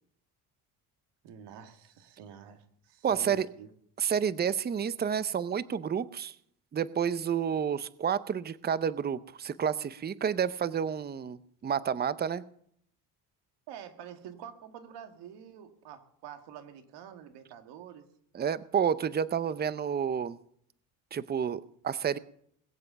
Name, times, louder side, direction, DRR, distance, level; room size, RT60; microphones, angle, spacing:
voice 1, 1.2-3.7 13.7-18.1, right 9 dB, 85° right, 7 dB, 1.9 m, -47 dB
voice 2, 3.0-3.5 4.0-6.3 6.7-12.4 18.3-20.4 21.1-22.2, right 8 dB, 25° right, 16 dB, 0.6 m, -30 dB
21.5 x 7.6 x 6.8 m, 0.67 s
cardioid pair, 110°, 40 cm